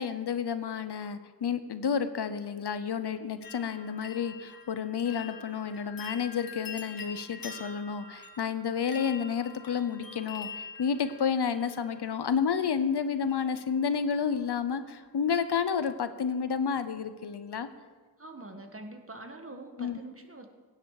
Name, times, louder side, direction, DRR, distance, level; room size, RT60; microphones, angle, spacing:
voice 1, 0.0-17.7 19.8-20.0, left 6 dB, 85° left, 11 dB, 0.8 m, -30 dB
sound 1, 3.4-12.4 13.3-13.8 14.1-14.6 15.0-15.1, left 5 dB, 60° left, 1.9 m, -46 dB
voice 2, 18.2-20.5, right 2 dB, 35° right, 5 dB, 1.5 m, -45 dB
16.0 x 9.7 x 4.8 m, 1.4 s
wide cardioid pair, 65°, 39 cm